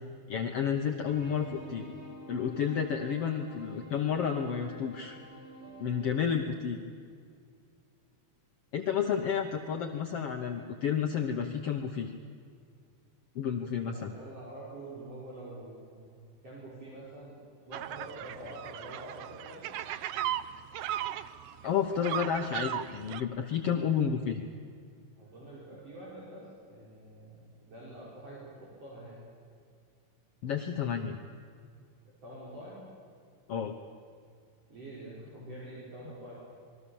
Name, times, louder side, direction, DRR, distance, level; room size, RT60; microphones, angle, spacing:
voice 1, 0.3-1.9 2.3-5.2 5.8-6.8 8.7-12.1 13.4-14.1 21.6-24.4 30.4-31.2 33.5-33.7, left 7 dB, 60° left, 4 dB, 1.7 m, -31 dB
sound 1, 1.1-6.3, equal, 20° left, 5.3 m, -48 dB
voice 2, 13.9-17.4 17.6-19.7 25.2-29.2 32.2-32.9 34.7-36.3, right 1 dB, 50° right, -7 dB, 6.0 m, -46 dB
sound 2, 17.7-23.2, right 12 dB, 90° right, 1.4 m, -37 dB
27.5 x 22.0 x 7.2 m, 2.2 s
omnidirectional pair, 3.7 m